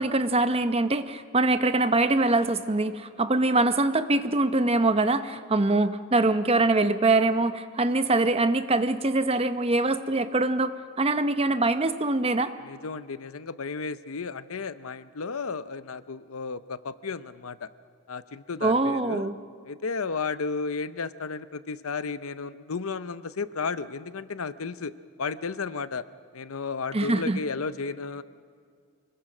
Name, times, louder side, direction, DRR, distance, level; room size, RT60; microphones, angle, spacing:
voice 1, 0.0-12.5 18.6-19.4 26.9-27.4, right 2 dB, 25° right, 11 dB, 0.7 m, -23 dB
voice 2, 12.7-17.7 18.1-19.3 19.7-24.9 25.2-26.0 26.3-28.2, left 4 dB, 70° left, 14 dB, 0.7 m, -33 dB
25.0 x 21.5 x 6.1 m, 2.2 s
head